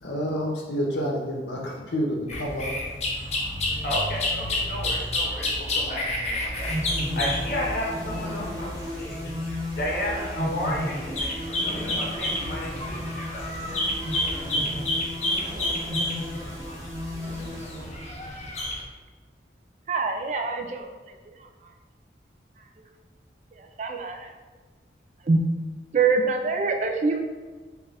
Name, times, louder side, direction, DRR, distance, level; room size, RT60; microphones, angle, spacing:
voice 1, 0.0-2.7, equal, 85° left, -1 dB, 0.8 m, -29 dB
sound 1, 2.3-18.8, left 1 dB, 35° left, 0.6 m, -30 dB
voice 2, 3.8-6.7 7.1-9.2 9.8-13.4, equal, 55° left, -4 dB, 1.1 m, -32 dB
sound 2, 6.6-18.4, left 1 dB, 20° right, 0.8 m, -34 dB
voice 3, 19.9-20.9 23.6-24.3 25.3-25.4 25.9-27.2, right 4 dB, 40° right, 4 dB, 0.3 m, -24 dB
4.5 x 2.4 x 3.3 m, 1.3 s
head